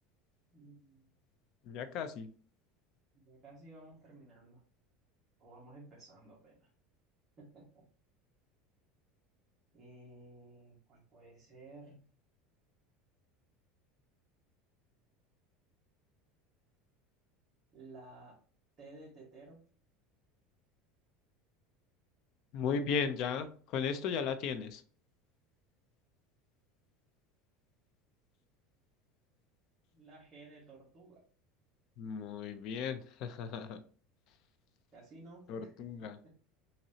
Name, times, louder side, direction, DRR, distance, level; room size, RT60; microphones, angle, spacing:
voice 1, 0.5-1.1 3.2-4.6 5.4-6.7 7.4-7.8 9.7-12.0 17.7-18.4 18.8-19.6 29.9-31.2 34.9-35.8 36.2-36.3, right 2 dB, 20° right, -7 dB, 1.7 m, -54 dB
voice 2, 1.6-2.3 22.5-24.8 32.0-33.8 35.5-36.2, left 6 dB, 45° left, 10 dB, 0.6 m, -36 dB
5.8 x 2.9 x 2.8 m, 0.43 s
cardioid pair, 160°, 0 cm